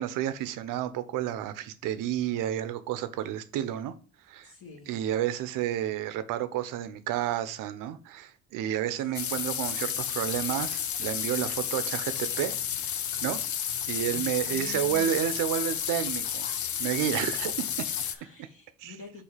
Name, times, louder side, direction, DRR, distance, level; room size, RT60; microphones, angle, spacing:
voice 1, 0.0-3.9 4.3-4.5 4.9-12.6 13.2-13.4 13.9-16.2 16.8-17.9 18.8-18.9, right 11 dB, 85° right, 0.8 m, -30 dB
voice 2, 4.4-5.0 9.0-9.5 14.1-15.4 16.4-16.6 18.0-19.2, left 5 dB, 45° left, 1.8 m, -48 dB
sound 1, 9.1-18.1, left 9 dB, 65° left, 0.8 m, -32 dB
6.5 x 2.8 x 5.6 m
cardioid pair, 90°, 31 cm